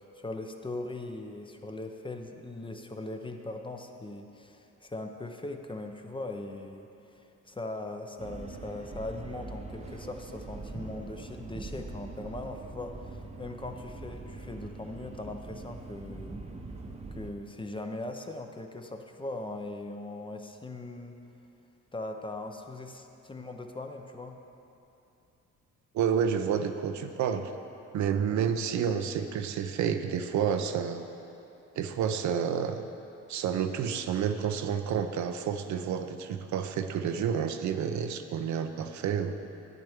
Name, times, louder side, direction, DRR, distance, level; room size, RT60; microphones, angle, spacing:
voice 1, 0.0-16.4 17.1-21.2 21.9-24.4, left 2 dB, 15° left, 4 dB, 0.6 m, -40 dB
sound 1, 8.2-17.3, right 3 dB, 20° right, 0.8 m, -43 dB
voice 2, 25.9-27.5 27.9-31.1 31.7-32.9 33.3-39.3, right 7 dB, 70° right, 8 dB, 0.6 m, -29 dB
11.0 x 8.9 x 3.6 m, 2.9 s
cardioid pair, 90°, 30 cm